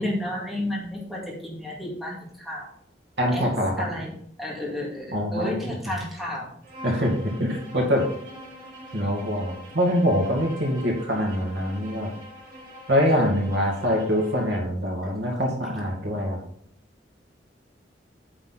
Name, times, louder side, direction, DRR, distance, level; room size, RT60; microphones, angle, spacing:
voice 1, 0.0-2.7 3.3-3.5 3.8-4.1 4.4-6.5, left 1 dB, ahead, -4 dB, 2.4 m, -31 dB
voice 2, 3.2-3.7 5.1-5.6 6.8-8.0 8.9-12.1 12.9-16.4, equal, 90° right, 0 dB, 2.3 m, -24 dB
Bowed string instrument, 6.6-14.5, equal, 50° right, 3.0 m, -44 dB
8.9 x 6.2 x 4.1 m, 0.67 s
head